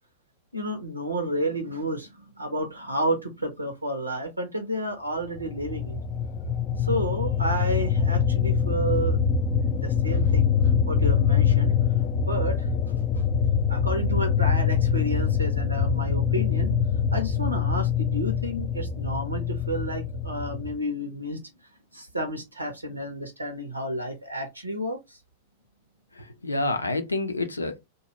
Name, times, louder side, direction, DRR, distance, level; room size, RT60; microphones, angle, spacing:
voice 1, 0.5-6.0 6.8-9.2 9.5-10.5 10.9-11.9 12.2-12.7 13.1-13.2 13.7-16.7 17.1-21.4 21.9-25.2, right 1 dB, 90° right, 0.7 m, -31 dB
sound 1, 5.4-20.7, left 7 dB, 30° left, 0.4 m, -24 dB
voice 2, 26.2-27.8, left 2 dB, 85° left, 0.5 m, -28 dB
2.6 x 2.3 x 2.8 m
figure-of-eight pair, 95°, 0 cm